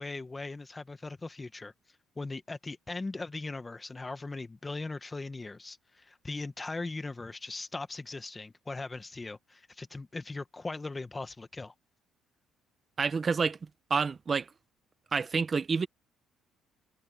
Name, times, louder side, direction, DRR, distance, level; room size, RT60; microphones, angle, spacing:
voice 1, 0.0-1.7 2.2-11.7, left 3 dB, 15° left, 1.2 m, -39 dB
voice 2, 13.0-13.6 13.9-14.5 15.1-15.9, right 5 dB, 30° right, 0.9 m, -28 dB
cardioid pair, 130°, 0 cm